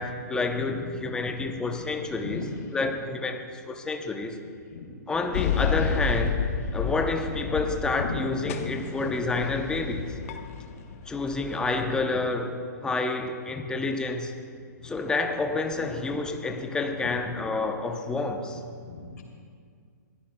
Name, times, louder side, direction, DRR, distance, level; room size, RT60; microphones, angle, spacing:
voice 1, 0.0-2.4 2.7-4.4 5.1-6.4 6.7-10.1 11.1-12.6 12.8-14.3 14.8-18.6, left 3 dB, 10° left, 5 dB, 0.7 m, -29 dB
voice 2, 0.6-0.9 1.4-2.5 4.7-4.8 5.4-5.5 7.3-7.5 8.0-8.2 8.5-9.0 14.8-14.9 18.8-19.2, left 4 dB, 65° left, 1 dB, 2.9 m, -37 dB
sound 1, 5.3-8.2 8.5-12.0, left 6 dB, 50° left, 0.9 m, -31 dB
21.5 x 14.5 x 2.3 m, 2.1 s
hypercardioid pair, 130°, 10 cm